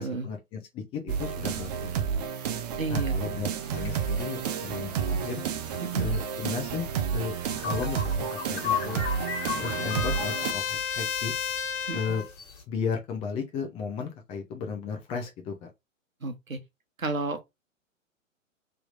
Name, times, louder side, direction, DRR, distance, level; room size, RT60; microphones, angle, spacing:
voice 1, 0.0-1.9 2.9-5.4 6.0-9.0 9.4-11.3 11.9-12.2 12.7-15.7, left 6 dB, 15° left, 0.5 m, -35 dB
sound 1, 1.1-10.5, right 7 dB, 30° right, 0.5 m, -31 dB
voice 2, 2.8-3.1 5.9-6.1 11.9-12.2 16.2-16.6 17.0-17.5, right 3 dB, 85° right, 1.1 m, -32 dB
sound 2, 3.6-12.6, left 7 dB, 55° left, 1.8 m, -38 dB
Trumpet, 7.9-12.3, left 7 dB, 75° left, 0.7 m, -34 dB
3.4 x 3.0 x 2.5 m
figure-of-eight pair, 115°, 40 cm